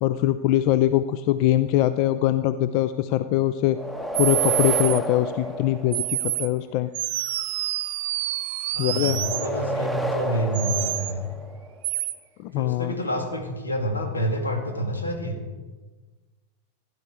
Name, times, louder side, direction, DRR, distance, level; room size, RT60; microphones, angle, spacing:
voice 1, 0.0-3.8 4.2-6.9 8.8-9.2 12.4-12.9, left 13 dB, 45° left, 13 dB, 0.4 m, -22 dB
sound 1, 3.7-6.5 9.1-11.8, equal, 5° left, 1.2 m, -31 dB
sound 2, 4.1-5.0 5.9-6.5 6.9-9.5 10.5-11.1 11.8-12.1, right 15 dB, 50° right, 0.8 m, -27 dB
voice 2, 8.7-11.3 12.5-15.4, equal, 80° left, 4 dB, 2.3 m, -28 dB
16.0 x 11.0 x 4.7 m, 1.3 s
figure-of-eight pair, 90°, 0 cm